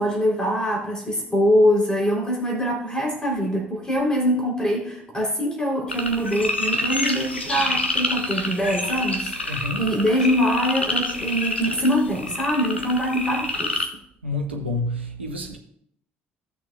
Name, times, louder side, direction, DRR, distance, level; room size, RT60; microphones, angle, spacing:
voice 1, 0.0-13.8, equal, 15° left, 3.6 m, -23 dB
sound 1, 5.9-13.8, left 2 dB, 85° left, 0.5 m, -27 dB
voice 2, 9.4-9.9 14.2-15.6, left 2 dB, 85° right, 0.9 m, -28 dB
16.0 x 6.3 x 2.4 m
figure-of-eight pair, 50°, 6 cm